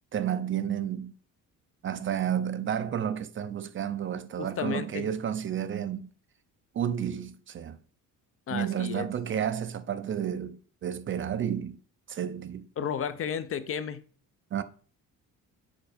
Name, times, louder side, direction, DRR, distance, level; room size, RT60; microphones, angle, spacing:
voice 1, 0.1-1.1 1.8-6.1 6.7-7.8 8.5-11.8 12.1-12.7 14.5-14.6, right 9 dB, 35° right, 0.4 m, -31 dB
voice 2, 4.4-5.1 8.5-9.1 12.8-14.0, left 8 dB, 40° left, 0.5 m, -33 dB
7.1 x 4.5 x 5.0 m
cardioid pair, 145°, 35 cm